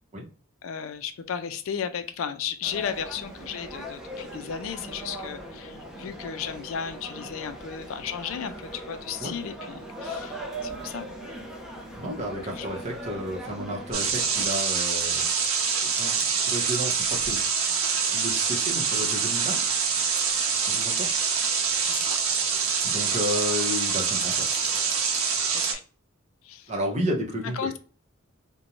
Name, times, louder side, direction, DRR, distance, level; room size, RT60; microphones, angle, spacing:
voice 1, 0.6-10.3 10.6-11.1 12.5-12.7 21.8-22.2 25.7-25.8 26.4-26.7 27.4-27.8, left 7 dB, 70° left, 10 dB, 0.4 m, -34 dB
sound 1, 2.6-14.5, equal, ahead, 0.5 m, -39 dB
voice 2, 12.0-15.2 15.6-17.4 18.1-19.6 20.7-21.1 22.8-24.4 26.7-27.8, equal, 30° right, -1 dB, 0.8 m, -32 dB
sound 2, 13.9-25.7, right 6 dB, 80° right, 0.6 m, -25 dB
2.5 x 2.1 x 2.9 m, 0.38 s
head